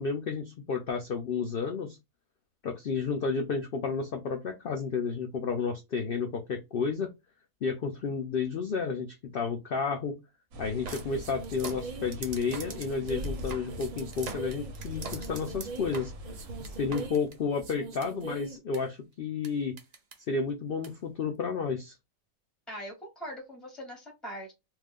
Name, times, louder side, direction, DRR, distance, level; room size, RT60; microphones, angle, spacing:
voice 1, 0.0-2.0 2.6-7.1 7.6-10.2 10.6-16.1 16.8-19.7 20.3-21.9, left 5 dB, 75° left, 4 dB, 0.5 m, -31 dB
sound 1, 10.5-17.1, left 1 dB, 80° right, 1.2 m, -42 dB
sound 2, 10.9-18.8 19.4-19.5 19.8-20.1 20.8-20.9, right 4 dB, 60° right, 0.4 m, -41 dB
voice 2, 22.7-24.5, equal, ahead, 0 dB, 1.2 m, -41 dB
2.6 x 2.4 x 3.5 m, 0.22 s
omnidirectional pair, 1.5 m